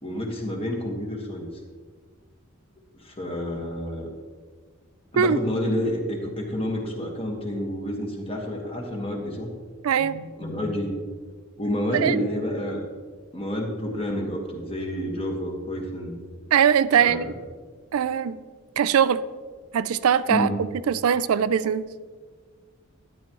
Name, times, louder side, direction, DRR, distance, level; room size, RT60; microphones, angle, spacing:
voice 1, 0.0-1.5 2.9-4.1 5.1-9.5 10.0-11.0 11.6-12.8 13.3-16.2 16.9-17.3 20.3-20.6, equal, 25° left, 1 dB, 1.5 m, -29 dB
voice 2, 9.8-10.2 11.9-12.2 16.5-17.3 17.9-18.4 18.8-19.3 19.7-20.5 20.9-21.9, right 8 dB, 85° right, 15 dB, 0.4 m, -21 dB
12.5 x 10.5 x 3.0 m, 1.6 s
head